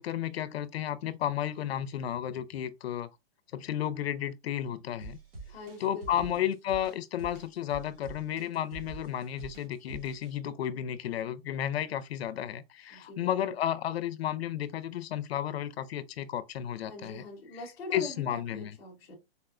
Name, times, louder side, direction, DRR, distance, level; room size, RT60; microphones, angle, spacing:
voice 1, 0.0-3.1 3.5-5.2 5.8-17.2 17.9-18.8, left 10 dB, 80° left, 0.5 m, -33 dB
sound 1, 5.0-10.3, right 3 dB, 70° right, 1.8 m, -45 dB
voice 2, 5.5-6.4 12.9-13.5 16.8-19.2, left 2 dB, 10° left, 0.7 m, -43 dB
4.0 x 2.1 x 2.4 m
hypercardioid pair, 175°, 30 cm